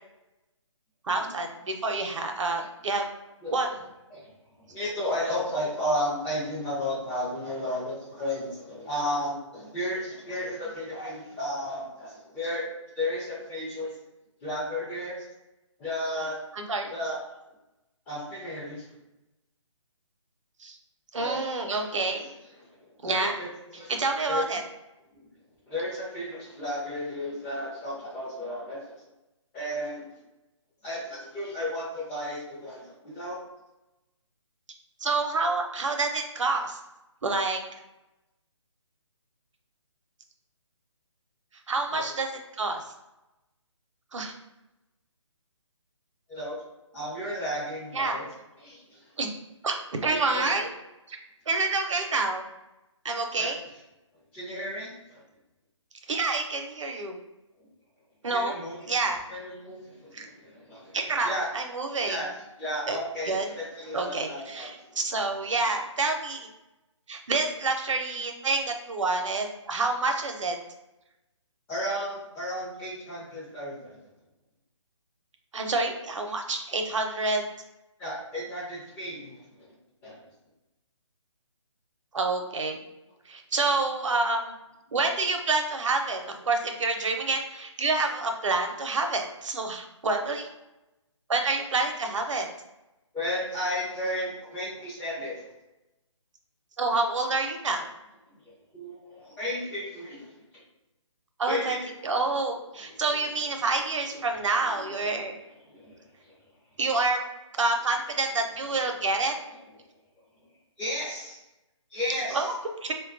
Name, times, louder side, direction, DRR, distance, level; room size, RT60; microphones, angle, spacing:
voice 1, 1.1-3.1 3.5-3.7 16.5-16.9 20.6-20.8 21.1-22.2 23.0-23.3 23.9-24.6 35.0-36.8 37.2-37.6 41.7-42.3 42.6-42.8 44.1-44.3 47.9-48.2 49.2-49.3 49.6-50.7 51.1-51.2 51.5-52.5 53.0-53.6 56.1-57.1 58.2-58.5 58.9-59.2 60.1-60.3 60.9-62.2 62.9-63.0 63.3-63.4 63.9-64.8 65.0-66.5 67.1-70.6 75.5-77.4 82.1-82.8 83.3-84.5 84.9-90.5 91.3-92.5 96.8-97.9 101.4-101.8 102.0-105.3 106.8-107.2 107.6-109.3 112.3-112.5 112.8-112.9, right 3 dB, 75° right, 4 dB, 0.6 m, -28 dB
voice 2, 4.7-13.9 14.4-15.2 15.8-16.4 16.9-17.2 18.1-18.8 21.1-21.4 21.7-21.9 22.2-22.3 22.6-22.8 23.0-23.5 23.7-23.9 24.3-24.6 25.1-25.3 25.7-29.0 29.5-30.1 30.8-33.4 41.9-42.1 46.3-46.6 46.9-48.3 48.6-49.1 50.1-50.5 53.4-53.5 54.3-55.2 58.3-58.9 59.3-61.0 61.2-61.5 62.1-62.3 62.6-65.0 71.7-74.0 78.0-79.4 80.0-80.2 93.1-95.5 98.7-100.4 101.5-101.8 102.9-103.0 104.1-104.2 104.6-106.3 110.8-111.4 111.9-112.5, left 1 dB, 10° left, -6 dB, 0.5 m, -33 dB
4.2 x 2.2 x 2.5 m, 0.97 s
hypercardioid pair, 155°, 16 cm